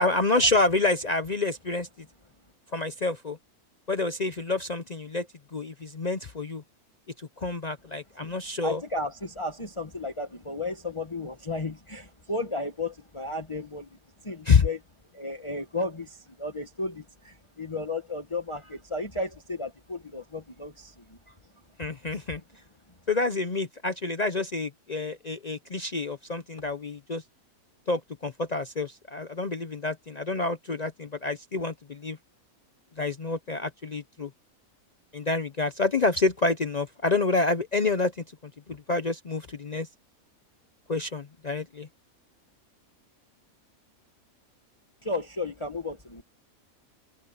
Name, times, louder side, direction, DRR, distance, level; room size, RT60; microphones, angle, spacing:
voice 1, 0.0-1.9 2.7-3.4 3.9-5.3 5.5-6.6 7.2-8.8 14.4-14.7 21.8-22.4 23.1-27.2 27.9-32.2 33.0-34.3 35.1-39.9 40.9-41.9, left 3 dB, 40° left, 0.6 m, -28 dB
voice 2, 8.6-14.8 15.1-21.4 22.1-22.2 45.0-46.2, left 2 dB, 20° left, 1.3 m, -34 dB
open air
omnidirectional pair, 1.5 m